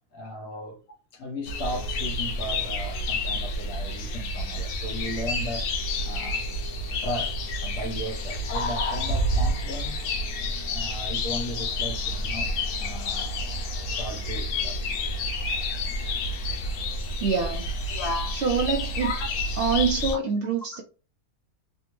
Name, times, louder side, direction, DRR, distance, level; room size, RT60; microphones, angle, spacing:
voice 1, 0.1-0.8 1.1-5.7 6.0-6.5 7.0-10.1 10.6-12.5 12.8-13.4 13.8-14.8 17.9-18.4 19.0-19.3 20.4-20.5, left 1 dB, 65° left, 1.1 m, -35 dB
sound 1, 1.4-20.2, left 1 dB, 85° left, 1.1 m, -29 dB
voice 2, 17.2-17.9 18.3-19.1 19.6-20.8, right 5 dB, 65° right, 0.7 m, -26 dB
3.3 x 2.2 x 3.0 m
omnidirectional pair, 1.5 m